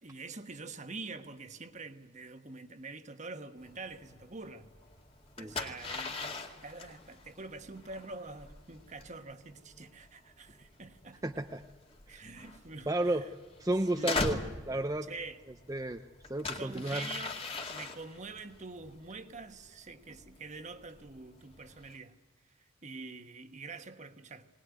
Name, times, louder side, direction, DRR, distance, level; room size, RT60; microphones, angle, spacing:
voice 1, 0.0-4.8 5.4-11.2 12.1-13.3 14.0-14.2 15.0-15.4 16.4-22.2 22.4-24.5, right 3 dB, 40° right, 1.3 m, -46 dB
sound 1, 3.6-22.0, left 3 dB, 30° left, 2.2 m, -42 dB
voice 2, 11.2-11.6 12.9-13.3 13.6-14.4 14.7-15.1 15.7-16.0 16.3-17.1, right 1 dB, 15° right, 0.6 m, -32 dB
20.5 x 19.5 x 9.5 m
head